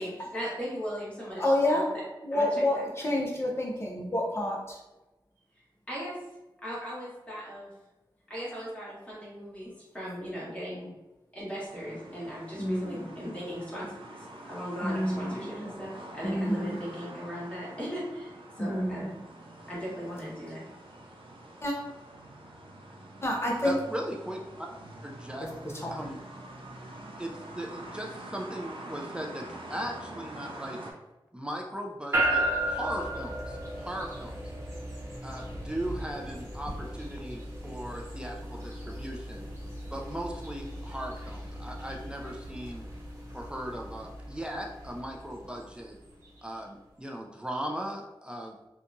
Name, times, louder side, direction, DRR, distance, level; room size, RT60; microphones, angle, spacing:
voice 1, 0.0-1.9 2.3-2.5 5.9-6.2 6.6-7.7 8.3-10.9 11.3-13.9 14.2-19.1 19.7-20.6, equal, 15° left, -8 dB, 1.3 m, -38 dB
voice 2, 1.4-1.9 2.2-4.8 12.6-13.0 14.8-15.6 16.2-16.8 18.6-19.1 21.6-21.8 23.2-23.8 25.8-25.9, left 1 dB, 30° left, -2 dB, 0.6 m, -28 dB
sound 1, 11.7-30.9, right 1 dB, 85° right, 0.5 m, -46 dB
voice 3, 23.6-24.7 25.0-25.5 25.9-26.2 27.2-30.8 31.3-34.3 35.2-39.5 39.9-42.8 43.3-46.0 46.4-48.6, right 1 dB, 10° right, 0 dB, 0.3 m, -38 dB
sound 2, 32.1-46.4, right 1 dB, 30° right, 0.9 m, -36 dB
2.8 x 2.2 x 2.6 m, 1.0 s
wide cardioid pair, 95°, 9 cm